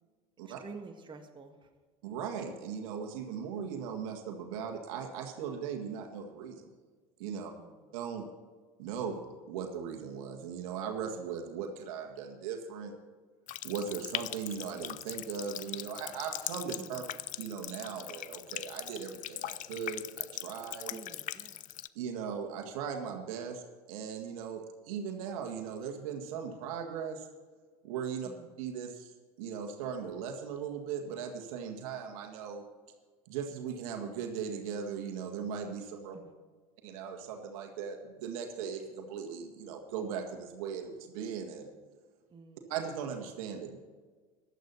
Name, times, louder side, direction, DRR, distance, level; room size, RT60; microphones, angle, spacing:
voice 1, 0.4-1.7 7.5-7.9 16.8-17.2 20.9-21.6 28.2-28.5 36.1-36.4 42.3-42.7, right 4 dB, 25° right, 4 dB, 1.7 m, -50 dB
voice 2, 2.0-6.7 7.2-7.5 7.9-8.3 8.8-12.9 13.6-17.0 17.4-20.9 22.0-23.6 23.9-27.2 27.8-28.3 28.6-29.1 29.4-32.6 33.3-36.2 36.8-41.7 42.7-43.8, right 7 dB, 70° right, 3 dB, 1.9 m, -38 dB
Water tap faucet, 13.5-21.9, left 14 dB, 45° left, 0.5 m, -41 dB
15.5 x 11.5 x 4.3 m, 1.5 s
hypercardioid pair, 70°, 18 cm